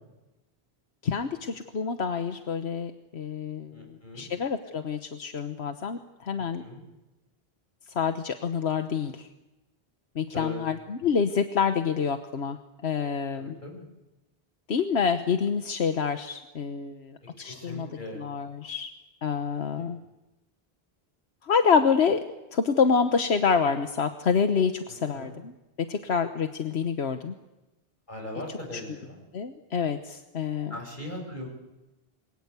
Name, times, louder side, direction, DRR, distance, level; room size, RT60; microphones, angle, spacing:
voice 1, 1.0-6.6 7.9-9.3 10.1-12.6 12.8-13.6 14.7-17.9 18.2-18.9 19.2-20.0 21.4-22.2 22.5-25.5 25.9-27.3 29.3-30.7, left 6 dB, 85° left, 8 dB, 1.4 m, -27 dB
voice 2, 3.7-4.3 6.4-6.8 10.3-10.6 13.4-13.8 17.4-18.2 19.8-19.9 24.9-25.3 28.1-29.2 30.7-31.5, left 1 dB, 50° left, 1 dB, 7.9 m, -39 dB
28.5 x 22.5 x 8.3 m, 1.0 s
omnidirectional pair, 1.1 m